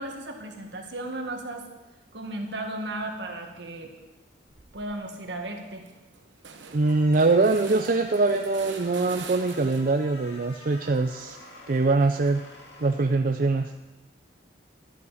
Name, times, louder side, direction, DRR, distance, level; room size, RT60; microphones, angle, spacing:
voice 1, 0.0-1.7 2.1-3.9 4.7-5.8, right 1 dB, 75° right, 3 dB, 1.8 m, -35 dB
sound 1, 4.5-5.0 5.4-5.5 5.7-10.1 10.5-12.6, right 5 dB, 90° right, 1.1 m, -46 dB
sound 2, 6.7-13.7, left 2 dB, 65° left, 2.7 m, -48 dB
voice 2, 6.7-11.4 11.7-12.4 12.8-13.7, right 3 dB, 50° right, 6 dB, 0.5 m, -23 dB
12.5 x 11.0 x 5.0 m, 1.1 s
head